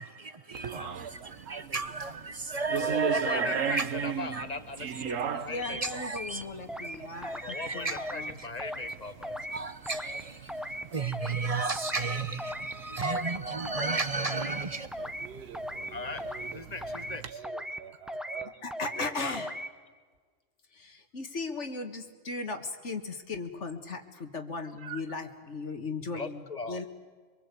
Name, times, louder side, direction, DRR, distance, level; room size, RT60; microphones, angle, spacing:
voice 1, 0.0-3.9 4.3-4.4 5.8-6.4 7.0-8.0 9.5-10.5 10.9-14.9, right 4 dB, 30° right, 0.9 m, -33 dB
sound 1, 0.5-17.3, right 7 dB, 90° right, 1.4 m, -39 dB
voice 2, 0.9-1.8 2.1-2.2 2.5-2.6 10.9-11.0 15.0-16.9 17.3-18.5 18.9-19.0 24.8-25.0, right 8 dB, 55° right, 1.3 m, -46 dB
voice 3, 2.7-6.0 7.4-9.4 15.9-16.2 16.5-17.4 19.0-19.4 26.1-26.8, left 3 dB, 35° left, 1.2 m, -38 dB
voice 4, 5.5-8.3 18.6-19.5 20.7-26.9, left 3 dB, 65° left, 1.9 m, -37 dB
sound 2, 5.6-5.9 6.2-7.0 7.2-7.7 8.0-8.3 8.6-8.9 9.2-9.6 9.9-10.2 10.5-10.8 11.1-11.5 11.8-12.1 12.4-12.7 13.0-13.4 13.7-14.0 14.3-14.6 14.9-15.3 15.5-15.9 16.2-16.5 16.8-17.2 17.4-17.8 18.1-18.4 18.7-19.1 19.3-19.7, equal, ahead, 0.7 m, -37 dB
25.0 x 22.5 x 8.3 m
omnidirectional pair, 1.3 m